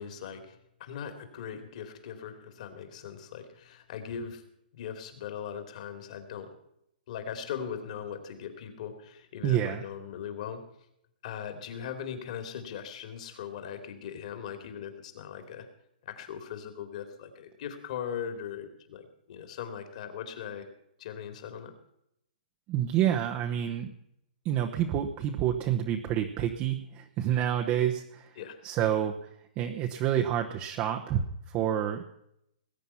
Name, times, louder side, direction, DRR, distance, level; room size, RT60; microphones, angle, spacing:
voice 1, 0.0-4.4 4.7-6.5 7.1-10.6 11.2-15.6 16.0-20.7 21.0-21.7 28.4-28.6, left 8 dB, 50° left, 7 dB, 2.9 m, -39 dB
voice 2, 9.4-9.8 22.7-23.9 24.4-28.4 28.6-29.2 29.6-32.0, right 10 dB, 25° right, 4 dB, 0.9 m, -28 dB
20.0 x 9.2 x 5.7 m, 0.77 s
hypercardioid pair, 160°, 5 cm